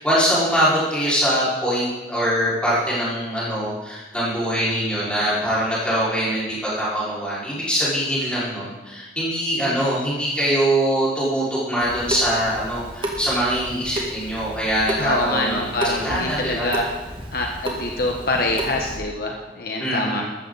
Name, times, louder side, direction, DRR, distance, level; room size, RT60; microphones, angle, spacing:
voice 1, 0.0-15.7 15.9-16.7 19.8-20.2, equal, 5° left, -9 dB, 5.6 m, -23 dB
Water tap faucet / Sink (filling or washing) / Drip, 11.8-19.0, right 1 dB, 30° right, 2.1 m, -32 dB
voice 2, 15.0-16.8 17.3-20.2, left 2 dB, 60° left, 1 dB, 1.4 m, -25 dB
15.0 x 13.5 x 4.2 m, 1.2 s
head